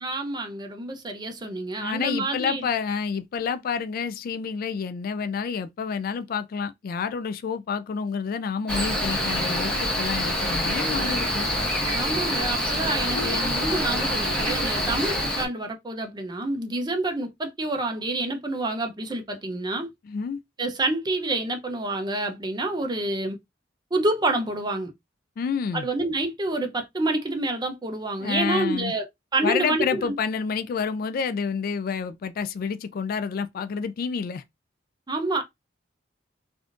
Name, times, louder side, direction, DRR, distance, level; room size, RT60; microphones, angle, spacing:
voice 1, 0.0-2.7 11.9-19.9 20.6-23.4 23.9-24.9 25.7-30.2 35.1-35.4, right 2 dB, 25° right, 0.6 m, -28 dB
voice 2, 1.8-11.5 20.1-20.4 25.4-25.9 28.2-28.9 29.4-34.4, left 6 dB, 50° left, 0.3 m, -29 dB
Cricket, 8.7-15.5, equal, 5° left, 1.3 m, -26 dB
3.4 x 2.6 x 2.4 m
head